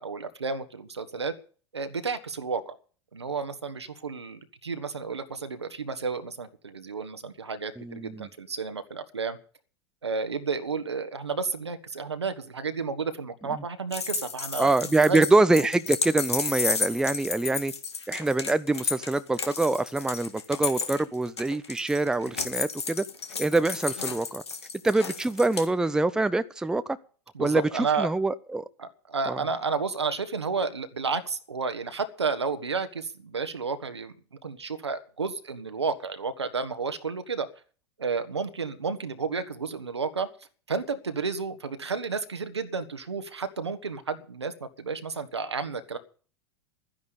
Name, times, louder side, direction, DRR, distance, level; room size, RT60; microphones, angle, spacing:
voice 1, 0.0-1.3 1.7-2.8 3.1-9.4 10.0-14.7 15.1-15.2 27.3-28.1 28.8-37.5 38.0-40.3 40.7-46.0, right 4 dB, 80° right, 1.4 m, -31 dB
voice 2, 7.8-8.3 14.6-17.7 18.1-23.0 23.4-24.4 24.8-26.8 27.4-27.6 28.0-28.6 29.3-29.4, right 2 dB, 5° right, 0.6 m, -25 dB
sound 1, 13.9-25.7, left 5 dB, 75° left, 1.7 m, -32 dB
12.5 x 10.5 x 6.7 m
figure-of-eight pair, 90°, 14 cm